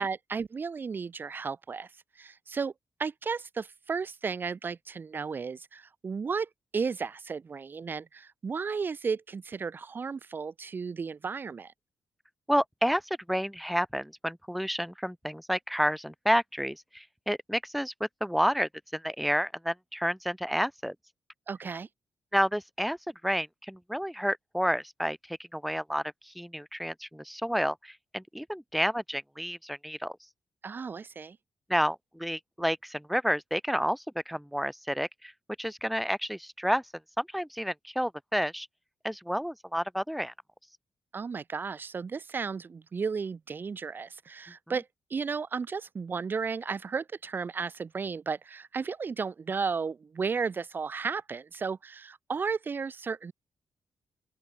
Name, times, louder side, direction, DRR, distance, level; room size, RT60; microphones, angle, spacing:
voice 1, 0.0-2.7 3.0-11.7 21.5-21.9 30.6-31.4 41.1-53.3, right 5 dB, 35° right, 1.3 m, -34 dB
voice 2, 12.5-21.0 22.3-23.0 23.2-30.2 31.7-35.3 35.6-36.9 37.2-38.7 39.0-40.3, equal, ahead, 2.0 m, -30 dB
open air
wide cardioid pair, 150°, 6 cm